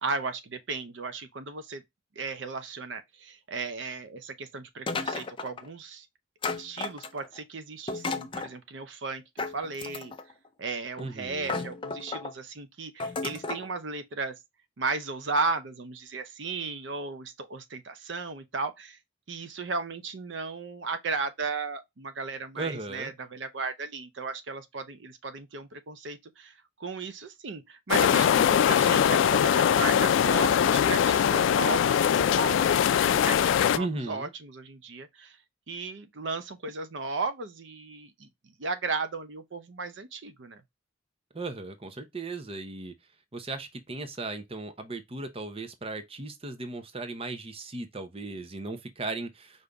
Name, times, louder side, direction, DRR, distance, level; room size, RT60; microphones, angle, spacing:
voice 1, 0.0-1.8 2.2-6.1 6.6-10.1 10.6-14.4 14.8-19.0 19.3-26.5 26.8-35.4 35.7-38.3 38.6-40.6, right 4 dB, 75° right, 0.7 m, -35 dB
sound 1, 4.9-5.7 6.4-7.4 7.9-8.5 9.4-10.3 11.0-11.1 11.4-12.3 13.0-13.7, left 4 dB, 25° left, 0.5 m, -33 dB
voice 2, 11.0-11.7 22.6-23.1 33.7-34.3 41.3-42.9 43.3-49.6, right 3 dB, 30° right, 0.7 m, -36 dB
sound 2, 27.9-33.8, left 8 dB, 80° left, 0.3 m, -22 dB
5.2 x 2.7 x 3.4 m
head